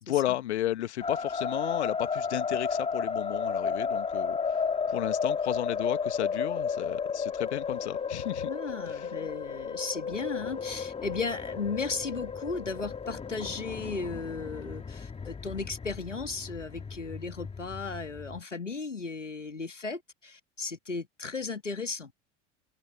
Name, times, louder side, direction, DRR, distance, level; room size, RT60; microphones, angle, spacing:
voice 1, 0.0-8.5 8.9-9.1, left 13 dB, 65° left, 1.4 m, -33 dB
sound 1, 1.0-18.4, left 5 dB, 15° left, 2.2 m, -33 dB
voice 2, 8.4-22.1, left 4 dB, 90° left, 2.1 m, -35 dB
figure-of-eight pair, 80°, 36 cm